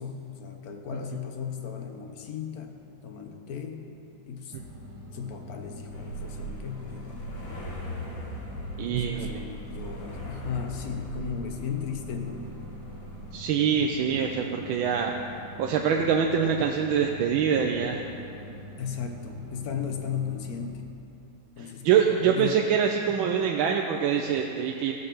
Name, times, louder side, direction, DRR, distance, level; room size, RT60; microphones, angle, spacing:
voice 1, 0.0-2.8 3.0-3.8 4.3-4.6 5.1-7.2 8.9-12.5 18.8-20.9 21.6-22.6, left 7 dB, 60° left, 5 dB, 1.2 m, -36 dB
sound 1, 4.5-20.7, equal, 60° right, 1.6 m, -44 dB
sound 2, 5.9-13.4, equal, 85° left, 2.4 m, -40 dB
voice 2, 8.8-9.4 13.3-15.1 15.6-18.0 21.8-24.9, right 7 dB, 85° right, 2 dB, 1.4 m, -24 dB
15.5 x 5.5 x 6.5 m, 2.7 s
omnidirectional pair, 2.1 m